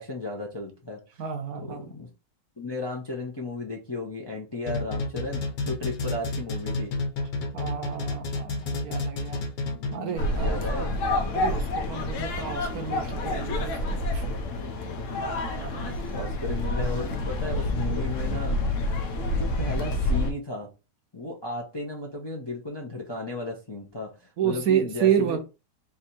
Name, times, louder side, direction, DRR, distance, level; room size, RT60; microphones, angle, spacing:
voice 1, 0.0-1.0 1.6-2.1 2.6-6.9 9.3-10.9 14.5-15.2 15.8-18.8 19.3-20.7 21.1-25.4, left 2 dB, 25° left, 0.5 m, -35 dB
voice 2, 1.2-2.0 7.5-9.4 9.9-10.9 11.3-14.2 15.5-15.9 24.4-25.4, right 8 dB, 65° right, 1.1 m, -30 dB
sound 1, 4.7-10.2, left 3 dB, 85° left, 1.5 m, -30 dB
sound 2, 10.2-20.3, left 2 dB, 60° left, 0.9 m, -28 dB
3.5 x 2.7 x 4.3 m
omnidirectional pair, 1.8 m